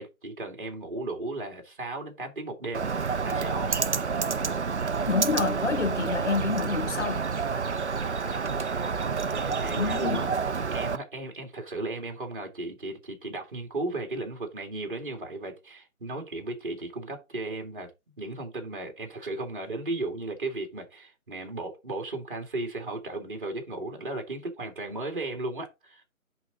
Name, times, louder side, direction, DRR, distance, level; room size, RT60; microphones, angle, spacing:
voice 1, 0.0-2.8 3.3-3.8 8.0-10.3 10.7-26.0, right 2 dB, 35° right, 2.2 m, -35 dB
Bird, 2.7-11.0, right 5 dB, 55° right, 0.6 m, -29 dB
voice 2, 5.1-7.2 9.7-10.3, left 5 dB, 55° left, 0.9 m, -28 dB
10.0 x 3.8 x 4.0 m
figure-of-eight pair, 175°, 43 cm